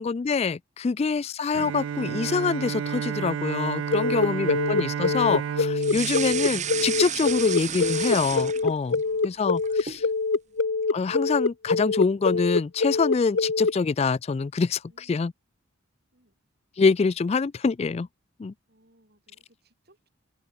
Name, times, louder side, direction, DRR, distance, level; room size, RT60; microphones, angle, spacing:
voice 1, 0.0-9.0 9.2-10.0 10.9-15.3 16.8-18.1 18.4-18.5, left 4 dB, 30° left, 0.3 m, -25 dB
voice 2, 0.8-1.3 9.0-9.7 10.4-10.6 14.8-15.3 16.1-16.3 18.7-20.1, right 1 dB, 50° right, 6.5 m, -63 dB
Bowed string instrument, 1.5-7.4, right 8 dB, 70° right, 0.3 m, -32 dB
sound 1, 3.9-13.7, left 4 dB, 60° left, 0.7 m, -24 dB
sound 2, 5.8-9.0 9.4-10.1, right 9 dB, 35° right, 1.3 m, -32 dB
open air
head